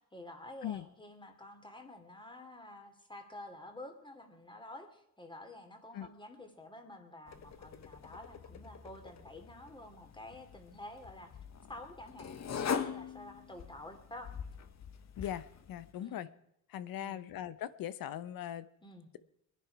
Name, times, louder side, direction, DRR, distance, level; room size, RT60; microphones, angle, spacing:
voice 1, 0.0-11.3 11.7-14.3 16.0-16.3 16.9-17.2 18.8-19.1, left 1 dB, 15° left, 2.7 m, -50 dB
sound 1, 7.3-15.9, left 7 dB, 50° left, 1.1 m, -43 dB
voice 2, 15.2-16.3 16.7-18.7, left 11 dB, 75° left, 0.9 m, -40 dB
22.5 x 10.0 x 4.7 m
cardioid pair, 105°, 35 cm